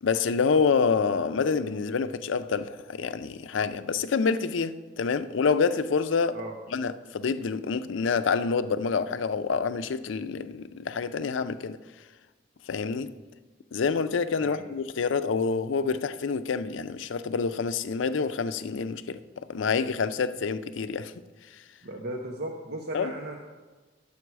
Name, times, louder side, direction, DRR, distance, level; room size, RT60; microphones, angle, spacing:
voice 1, 0.0-6.4 6.7-11.8 12.7-13.1 13.7-19.2 19.5-21.1 22.9-23.1, left 5 dB, 80° left, 0.4 m, -27 dB
voice 2, 21.8-23.4, right 1 dB, 60° right, 0.8 m, -36 dB
11.0 x 6.9 x 4.7 m
head